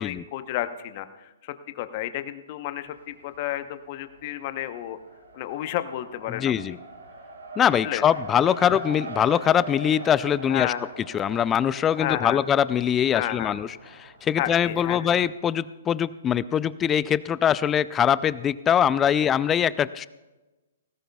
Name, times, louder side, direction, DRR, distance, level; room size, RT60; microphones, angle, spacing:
voice 1, 0.0-5.0 5.3-6.8 7.8-8.0 8.6-8.7 10.5-10.9 12.0-12.4 13.1-13.6 14.4-15.0, left 13 dB, 45° left, 11 dB, 0.9 m, -31 dB
Race car auto racing, 2.8-3.6 3.9-15.3, right 2 dB, 80° right, 2.2 m, -42 dB
voice 2, 6.3-6.8 7.6-10.7 11.1-13.7 14.0-20.1, left 9 dB, 20° left, 18 dB, 0.4 m, -23 dB
19.5 x 16.5 x 2.3 m, 1.1 s
hypercardioid pair, 125°, 0 cm